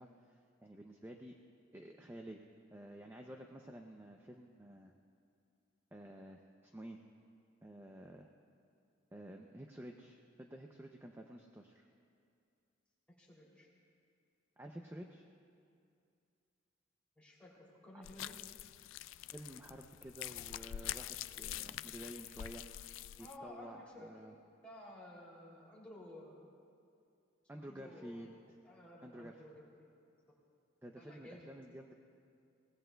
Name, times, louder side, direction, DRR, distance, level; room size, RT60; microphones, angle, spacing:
voice 1, 0.0-1.4 1.7-2.4 2.7-4.9 5.9-7.0 7.6-8.3 9.1-11.9 14.6-15.2 19.3-22.9 23.2-24.3 27.5-28.4 29.0-29.3 30.8-31.9, right 1 dB, 10° right, 2 dB, 0.5 m, -51 dB
voice 2, 13.2-13.7 17.2-18.4 23.2-24.1 24.6-26.5 27.5-28.2 28.6-29.9 31.0-31.5, left 1 dB, 5° left, -5 dB, 2.8 m, -54 dB
sound 1, 18.0-23.4, left 12 dB, 80° left, 0.3 m, -45 dB
22.5 x 18.5 x 2.3 m, 2.4 s
head